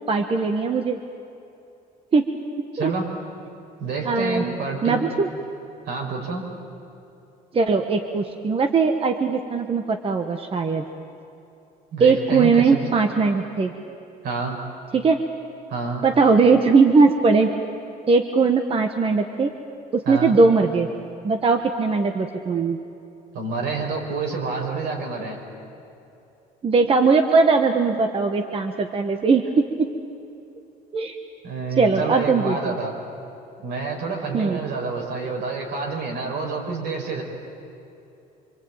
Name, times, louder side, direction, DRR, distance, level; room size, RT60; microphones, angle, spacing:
voice 1, 0.1-1.0 2.1-2.3 2.8-2.9 4.0-4.6 4.8-5.3 7.5-10.8 12.0-13.7 14.9-15.2 16.0-17.5 18.1-19.5 19.9-20.9 21.2-22.8 26.6-29.4 29.8-29.9 30.9-31.2 31.8-32.7 34.3-34.6, right 4 dB, 35° right, 5 dB, 1.4 m, -19 dB
voice 2, 2.7-3.1 3.8-5.0 5.9-6.5 11.9-12.8 14.2-14.6 15.7-16.0 20.1-20.4 23.3-25.4 31.4-32.9 33.6-37.2, right 4 dB, 75° right, 1 dB, 5.8 m, -28 dB
25.5 x 24.5 x 9.0 m, 2.8 s
cardioid pair, 110°, 17 cm